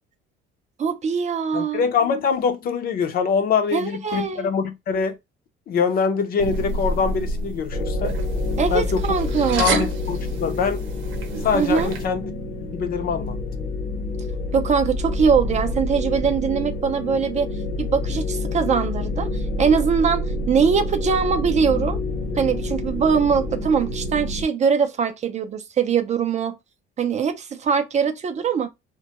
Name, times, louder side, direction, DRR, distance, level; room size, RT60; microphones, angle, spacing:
voice 1, 0.8-1.9 3.7-4.5 8.6-9.9 11.5-11.9 14.5-17.5 17.8-19.3 19.6-22.0 22.4-26.6 27.0-28.7, right 6 dB, 35° right, 0.4 m, -22 dB
voice 2, 1.5-5.2 5.7-8.2 8.7-9.0 9.6-10.8 11.4-12.3 12.7-13.3, left 6 dB, 45° left, 0.5 m, -23 dB
sound 1, 6.4-12.1, right 3 dB, 65° right, 0.7 m, -29 dB
sound 2, 7.7-24.4, left 2 dB, 70° left, 0.9 m, -28 dB
2.2 x 2.1 x 2.8 m
cardioid pair, 115°, 21 cm